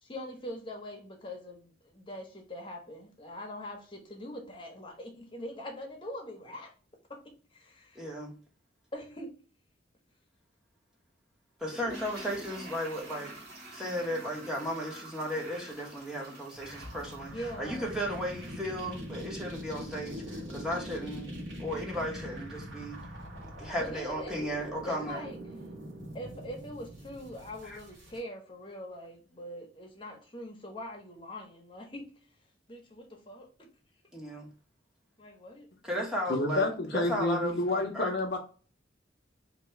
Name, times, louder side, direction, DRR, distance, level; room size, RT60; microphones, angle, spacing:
voice 1, 0.0-6.7 7.1-7.2 7.5-8.1 8.9-9.3 17.3-17.9 23.8-24.4 24.9-25.4 26.1-32.1 32.7-33.7 35.2-35.7, left 1 dB, 25° left, 0.9 m, -42 dB
voice 2, 7.9-8.3 11.6-13.3 13.7-21.3 21.6-23.0 23.6-25.3 27.7-27.8 34.1-34.5 35.8-36.7 36.9-38.1, equal, 5° right, 1.0 m, -35 dB
Toilet flush, 11.6-18.7 19.0-19.1, right 1 dB, 50° right, 1.3 m, -47 dB
sound 1, 16.5-28.2, equal, 70° right, 1.3 m, -43 dB
voice 3, 36.3-38.4, left 2 dB, 55° left, 0.6 m, -29 dB
3.0 x 2.8 x 4.3 m
head